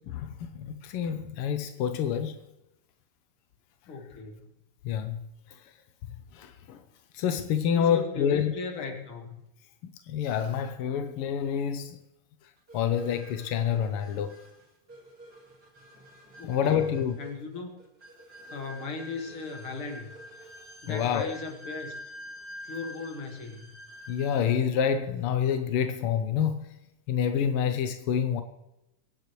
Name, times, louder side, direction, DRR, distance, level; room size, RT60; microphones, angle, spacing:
voice 1, 0.1-2.4 4.8-5.2 6.3-6.8 7.1-8.5 10.1-12.0 12.7-14.4 16.4-17.2 20.9-21.3 24.1-26.7 27.1-28.4, left 8 dB, 75° left, 1.3 m, -27 dB
voice 2, 3.9-4.4 7.7-9.3 16.4-17.7 18.5-20.1 20.8-21.9 22.6-23.7, left 4 dB, 50° left, 2.3 m, -37 dB
sound 1, 12.7-24.6, equal, 35° right, 3.1 m, -47 dB
23.5 x 9.9 x 3.1 m
omnidirectional pair, 3.4 m